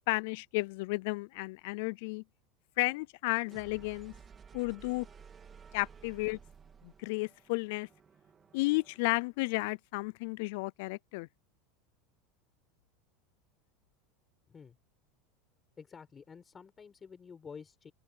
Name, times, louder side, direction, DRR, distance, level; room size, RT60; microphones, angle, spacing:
voice 1, 0.1-2.2 2.8-4.1 4.5-5.1 5.7-6.4 6.8-7.9 8.5-11.3, left 25 dB, 65° left, 0.4 m, -33 dB
sound 1, 3.4-9.2, right 6 dB, 20° right, 3.3 m, -55 dB
voice 2, 15.8-17.9, left 6 dB, 20° left, 5.4 m, -50 dB
supercardioid pair, 140°, 0 cm